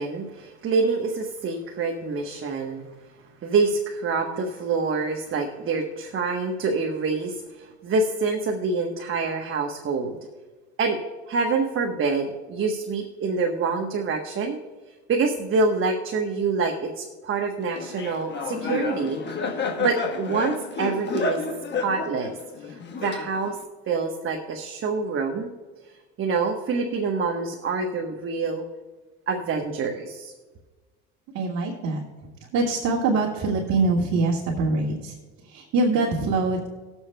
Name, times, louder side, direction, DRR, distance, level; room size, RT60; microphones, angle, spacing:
voice 1, 0.0-2.8 3.4-10.2 10.8-11.0 11.3-14.6 15.1-19.4 19.8-21.4 21.8-23.6 23.9-25.5 26.2-28.6 29.3-30.3, right 4 dB, 40° right, 2 dB, 1.1 m, -26 dB
Laughter, 17.8-23.6, left 4 dB, 35° left, 1.3 m, -30 dB
voice 2, 31.3-32.0 32.5-35.1 35.5-36.7, right 3 dB, 55° right, -3 dB, 1.8 m, -23 dB
20.0 x 7.2 x 2.2 m, 1.3 s
supercardioid pair, 95°, 33 cm